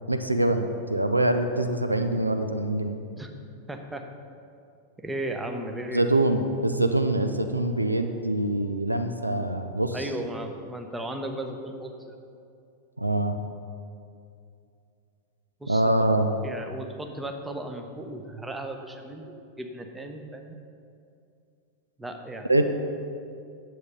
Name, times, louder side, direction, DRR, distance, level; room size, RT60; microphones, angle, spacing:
voice 1, 0.1-3.0 5.9-10.1 13.0-13.4 15.7-16.3 22.5-22.8, right 1 dB, 85° right, 7 dB, 0.5 m, -24 dB
voice 2, 3.7-4.0 5.0-6.0 9.9-12.2 15.6-20.6 22.0-22.5, right 1 dB, 10° right, 4 dB, 0.9 m, -36 dB
9.5 x 7.5 x 5.4 m, 2.5 s
figure-of-eight pair, 90°, 0 cm